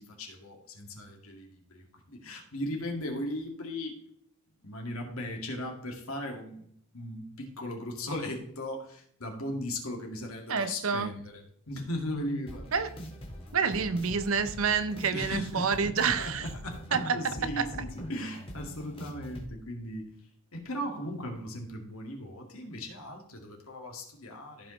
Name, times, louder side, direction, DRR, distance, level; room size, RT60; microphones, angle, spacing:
voice 1, 0.0-4.0 4.6-12.7 15.1-15.9 16.2-20.1 20.5-24.7, left 1 dB, 85° left, 2 dB, 2.1 m, -37 dB
voice 2, 10.5-11.1 12.7-12.9 13.5-16.5 16.9-17.7, right 5 dB, 75° right, 12 dB, 0.7 m, -28 dB
sound 1, 12.5-19.5, equal, 25° left, 1.7 m, -43 dB
14.5 x 5.2 x 3.2 m, 0.67 s
head